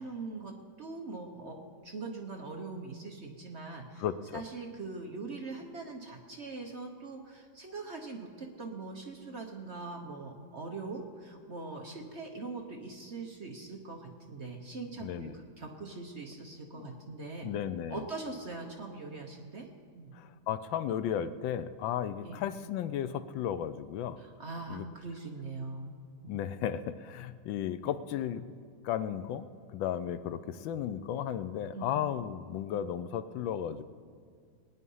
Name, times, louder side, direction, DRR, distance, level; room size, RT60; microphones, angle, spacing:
voice 1, 0.0-4.0 4.3-17.5 17.9-19.7 19.9-20.1 22.2-22.4 24.2-26.4 31.7-32.0, right 3 dB, 45° right, 2 dB, 1.0 m, -42 dB
voice 2, 4.0-4.4 15.0-15.3 16.7-16.9 17.4-18.0 20.1-24.2 24.7-24.8 26.3-28.4 28.8-29.4 29.7-33.8, left 10 dB, 75° left, 13 dB, 1.3 m, -34 dB
19.5 x 9.7 x 5.5 m, 2.2 s
omnidirectional pair, 2.2 m